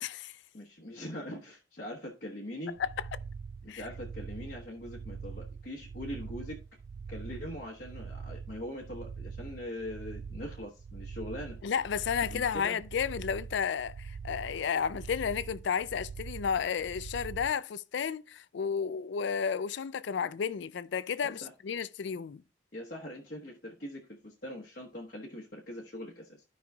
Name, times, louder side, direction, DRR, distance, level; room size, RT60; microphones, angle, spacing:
voice 1, 0.0-0.3 2.8-2.9 3.7-3.8 11.6-22.4, left 7 dB, 70° left, 0.4 m, -32 dB
voice 2, 0.5-2.7 3.6-6.6 7.1-11.6 12.3-12.8 21.2-21.5 22.7-26.4, left 1 dB, 50° left, 1.2 m, -42 dB
sound 1, 2.8-17.5, right 5 dB, 50° right, 0.3 m, -43 dB
13.0 x 5.5 x 2.3 m
head